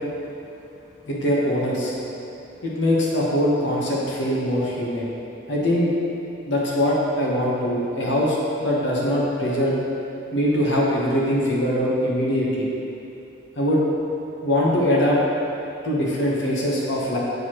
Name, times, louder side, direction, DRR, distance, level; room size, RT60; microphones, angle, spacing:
voice 1, 1.1-1.9 2.6-5.1 5.5-5.9 6.5-9.7 10.3-12.7 13.6-13.9 14.4-15.2 15.8-17.2, equal, 75° left, -4 dB, 1.0 m, -22 dB
7.9 x 4.7 x 3.0 m, 2.8 s
head